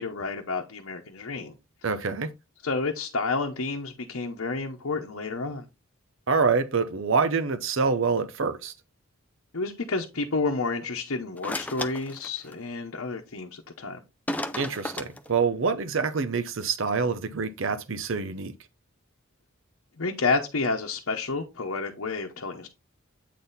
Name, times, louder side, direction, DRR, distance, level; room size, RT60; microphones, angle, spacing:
voice 1, 0.0-1.5 2.6-5.7 9.5-14.0 20.0-22.7, left 3 dB, 70° left, 0.9 m, -30 dB
voice 2, 1.8-2.3 6.3-8.7 14.6-18.5, right 5 dB, 60° right, 0.6 m, -26 dB
sound 1, 11.4-12.5 14.3-15.3, left 1 dB, 5° left, 0.4 m, -33 dB
8.3 x 4.1 x 4.0 m
head